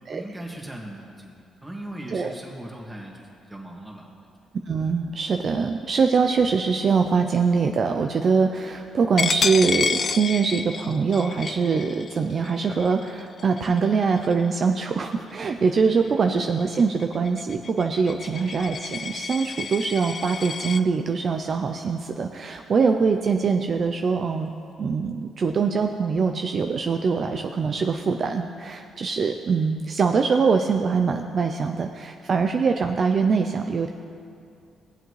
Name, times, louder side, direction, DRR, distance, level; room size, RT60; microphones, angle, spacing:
voice 1, 0.1-4.2 16.0-16.2 18.2-18.5, right 1 dB, 10° right, -1 dB, 1.9 m, -39 dB
voice 2, 4.7-24.5 24.8-33.9, right 5 dB, 45° right, 5 dB, 0.5 m, -23 dB
Coin (dropping), 9.2-14.6 15.0-15.3 15.7-20.8, left 6 dB, 45° left, 0.3 m, -30 dB
18.0 x 7.8 x 3.2 m, 2.4 s
cardioid pair, 90°, 0 cm